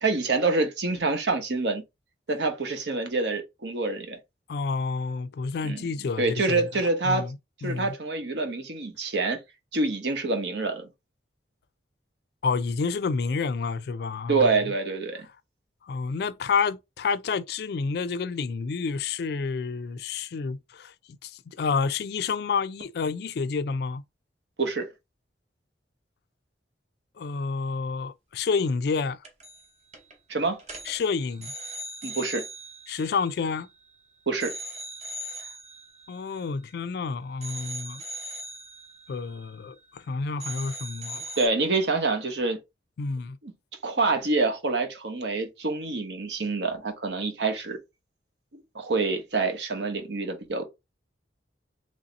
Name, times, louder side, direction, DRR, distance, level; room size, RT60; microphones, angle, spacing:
voice 1, 0.0-1.8 2.3-4.2 5.6-5.8 6.2-7.2 7.6-9.4 9.7-10.9 14.3-15.2 24.6-24.9 30.3-30.6 32.0-32.4 34.3-34.5 41.4-42.6 43.4-43.5 43.8-47.8 48.5-50.6, right 3 dB, 70° right, 0.9 m, -26 dB
voice 2, 4.5-6.7 7.0-7.4 7.6-7.9 12.4-14.5 15.8-24.0 27.2-29.2 30.9-31.5 32.9-33.7 36.1-38.0 39.1-41.4 43.0-43.4, left 5 dB, 60° left, 0.3 m, -29 dB
sound 1, 29.2-29.7 29.9-30.2 30.6-34.0 34.4-37.0 37.4-40.1 40.4-41.5, right 1 dB, 35° right, 0.9 m, -40 dB
3.2 x 2.7 x 3.9 m
head